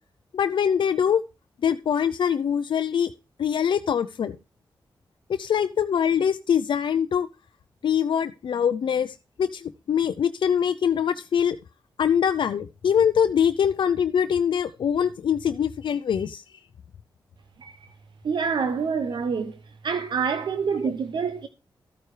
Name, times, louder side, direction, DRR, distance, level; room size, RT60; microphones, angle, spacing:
voice 1, 0.3-1.2 1.6-3.1 3.4-4.3 5.3-7.3 7.8-11.6 12.0-16.4, left 8 dB, 75° left, 0.5 m, -23 dB
voice 2, 18.2-19.6 19.8-21.5, right 5 dB, 70° right, 0.8 m, -26 dB
13.5 x 9.0 x 3.2 m
wide cardioid pair, 100°, 8 cm